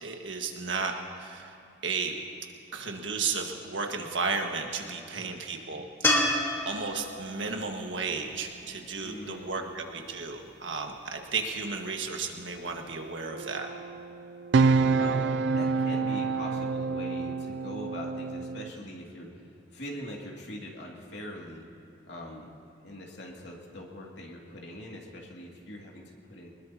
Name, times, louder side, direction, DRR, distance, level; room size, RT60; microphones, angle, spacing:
voice 1, 0.0-1.6 1.8-2.1 2.7-6.2 6.6-13.7, right 4 dB, 90° right, 3 dB, 1.7 m, -33 dB
sound 1, 6.0-9.3 12.5-12.6, left 1 dB, 15° left, 2.2 m, -30 dB
voice 2, 9.0-9.8 15.0-21.7 22.1-22.5 22.8-26.5, left 1 dB, 70° left, -2 dB, 2.5 m, -42 dB
sound 2, 13.3-18.7, right 4 dB, 70° right, 0.4 m, -27 dB
24.5 x 20.5 x 2.9 m, 2.7 s
head